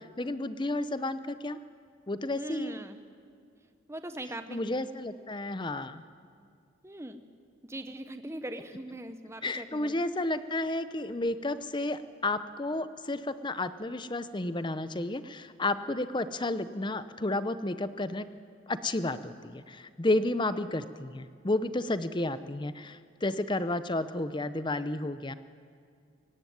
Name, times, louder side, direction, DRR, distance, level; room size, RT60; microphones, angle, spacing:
voice 1, 0.0-1.6 2.1-2.8 4.5-6.0 9.4-18.3 18.7-25.3, left 2 dB, 20° left, 13 dB, 0.7 m, -32 dB
voice 2, 2.4-3.0 3.9-4.6 6.8-7.2 7.6-10.0, right 1 dB, 15° right, 9 dB, 0.8 m, -40 dB
22.5 x 17.5 x 9.4 m, 2.3 s
head